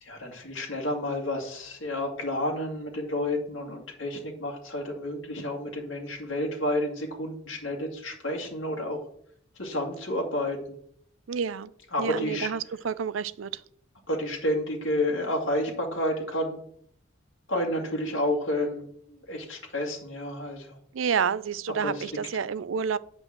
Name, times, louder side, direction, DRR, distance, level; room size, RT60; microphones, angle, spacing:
voice 1, 0.0-9.0 9.5-10.8 11.9-12.5 14.1-16.6 17.5-20.8 21.8-22.1, left 1 dB, 65° left, -1 dB, 2.3 m, -30 dB
voice 2, 11.3-11.7 12.0-13.6 20.9-23.0, right 6 dB, 75° right, 16 dB, 0.5 m, -29 dB
8.9 x 5.3 x 7.5 m, 0.67 s
head